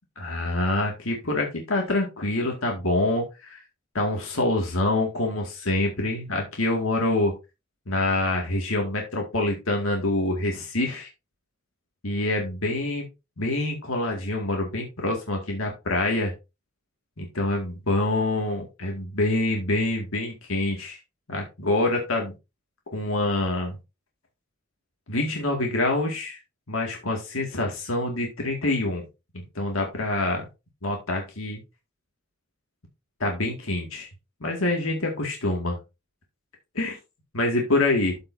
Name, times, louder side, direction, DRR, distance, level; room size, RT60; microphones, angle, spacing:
voice 1, 0.2-3.6 3.9-7.3 7.9-11.1 12.0-13.1 13.4-16.3 17.2-21.0 21.3-22.3 22.9-23.8 25.1-26.4 26.7-29.0 29.3-30.4 30.8-31.6 33.2-34.1 34.4-35.8 36.7-37.0 37.3-38.2, left 2 dB, 90° left, 1 dB, 2.1 m, -26 dB
13.0 x 5.4 x 2.7 m, 0.26 s
head